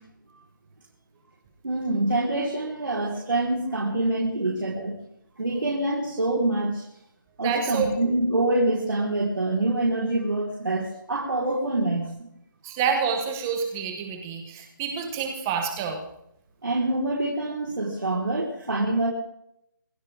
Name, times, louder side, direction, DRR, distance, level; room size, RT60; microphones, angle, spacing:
voice 1, 1.6-4.9 5.4-6.8 7.4-12.1 16.6-19.1, right 2 dB, 85° right, -3 dB, 4.8 m, -25 dB
voice 2, 7.4-8.1 12.6-16.0, right 6 dB, 5° right, 4 dB, 1.0 m, -28 dB
26.5 x 11.5 x 3.8 m, 0.78 s
hypercardioid pair, 180°, 11 cm